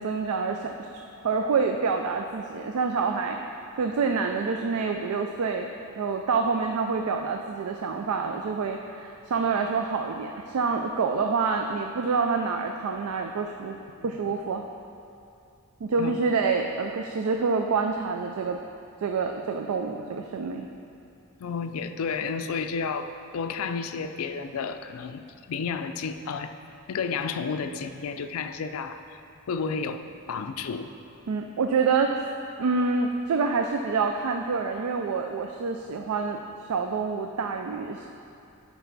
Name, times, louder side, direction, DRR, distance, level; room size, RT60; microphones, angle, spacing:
voice 1, 0.0-3.4 3.8-5.7 6.0-13.8 14.0-14.6 15.8-18.6 19.0-20.7 31.3-32.3 32.6-38.1, right 4 dB, 85° right, 4 dB, 0.4 m, -27 dB
voice 2, 14.0-14.3 16.0-16.2 21.4-26.5 26.9-29.2 29.5-30.0 30.3-30.9, left 5 dB, 75° left, 9 dB, 0.4 m, -32 dB
11.0 x 4.6 x 4.0 m, 2.6 s
head